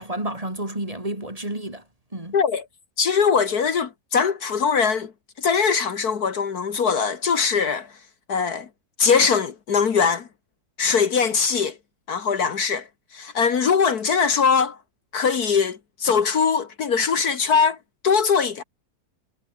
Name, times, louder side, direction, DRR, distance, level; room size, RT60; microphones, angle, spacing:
voice 1, 0.0-1.8 2.1-2.4, right 1 dB, 20° right, 4.2 m, -30 dB
voice 2, 2.3-2.6 3.0-5.1 5.4-7.9 8.3-8.7 9.0-10.3 10.8-11.8 12.1-12.9 13.1-14.8 15.1-17.8 18.0-18.6, left 6 dB, 65° left, 1.9 m, -21 dB
omnidirectional pair, 1.8 m